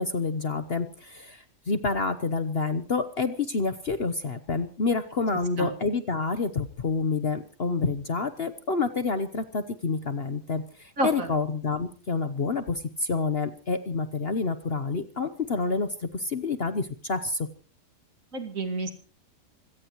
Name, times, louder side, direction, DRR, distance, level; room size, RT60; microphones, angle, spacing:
voice 1, 0.0-17.5, left 4 dB, 45° left, 11 dB, 1.1 m, -28 dB
voice 2, 11.0-11.3 18.3-18.9, right 2 dB, 55° right, 6 dB, 2.6 m, -29 dB
25.5 x 17.5 x 3.1 m, 0.37 s
omnidirectional pair, 1.7 m